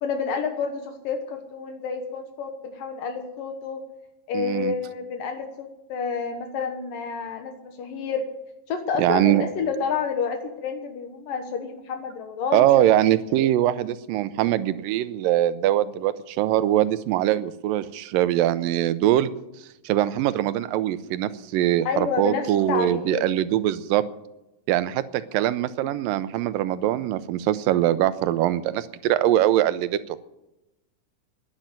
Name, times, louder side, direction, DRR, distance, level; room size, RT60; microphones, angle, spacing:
voice 1, 0.0-3.8 4.3-8.3 8.7-12.9 21.9-23.2, left 5 dB, 75° left, 5 dB, 2.9 m, -29 dB
voice 2, 4.3-4.7 9.0-9.4 12.5-19.3 19.8-24.0 24.7-30.2, right 13 dB, 85° right, 14 dB, 2.4 m, -22 dB
11.5 x 10.5 x 9.3 m, 0.92 s
omnidirectional pair, 4.0 m